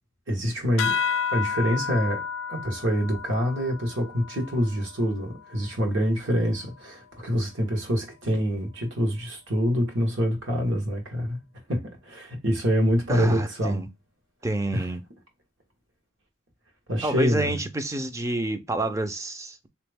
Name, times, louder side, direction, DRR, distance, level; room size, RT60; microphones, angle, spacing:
voice 1, 0.3-11.4 11.7-13.9 14.7-14.9 16.9-17.6, equal, 70° right, 1.5 m, -26 dB
sound 1, 0.8-5.7, left 6 dB, 85° left, 0.4 m, -32 dB
voice 2, 13.1-13.9 14.4-15.0 17.0-19.7, right 2 dB, 15° right, 0.4 m, -28 dB
3.5 x 3.0 x 3.4 m
head